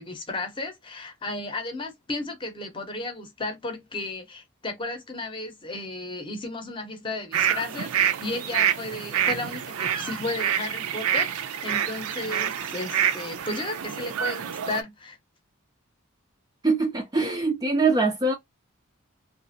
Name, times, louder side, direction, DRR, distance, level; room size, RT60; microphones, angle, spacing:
voice 1, 0.0-15.2, left 2 dB, 25° left, 0.7 m, -34 dB
sound 1, 7.3-14.8, right 9 dB, 90° right, 0.4 m, -27 dB
voice 2, 16.6-18.3, right 3 dB, 20° right, 0.3 m, -23 dB
2.7 x 2.5 x 2.6 m
head